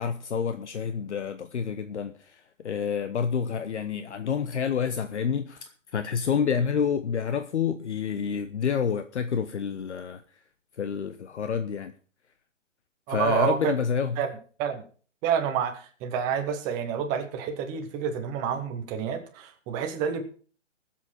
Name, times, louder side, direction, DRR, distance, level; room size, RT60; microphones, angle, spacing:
voice 1, 0.0-5.6 5.9-10.2 10.8-11.9 13.1-14.2, left 7 dB, 65° left, 1.0 m, -28 dB
voice 2, 13.1-13.7 14.2-14.3 14.6-14.8 15.2-20.2, right 8 dB, 10° right, 0.7 m, -28 dB
19.0 x 7.6 x 4.3 m
hypercardioid pair, 160°, 37 cm